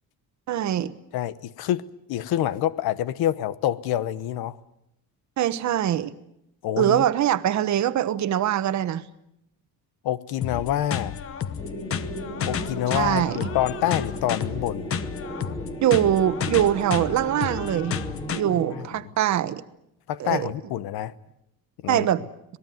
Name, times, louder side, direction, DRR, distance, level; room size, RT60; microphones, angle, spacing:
voice 1, 0.5-0.9 5.4-6.1 6.8-9.0 12.9-13.5 15.8-18.0 18.3-19.6 20.2-20.5 21.9-22.3, right 11 dB, 50° right, 13 dB, 1.1 m, -23 dB
voice 2, 1.1-4.6 6.6-7.0 10.0-11.2 12.5-14.9 18.5-18.9 20.1-21.1 21.8-22.1, left 12 dB, 90° left, 16 dB, 1.1 m, -27 dB
sound 1, 10.4-18.4, left 8 dB, 40° left, 1.1 m, -31 dB
sound 2, 11.6-18.9, right 1 dB, 10° left, 2.4 m, -36 dB
26.5 x 19.0 x 9.3 m, 0.82 s
cardioid pair, 170°, 36 cm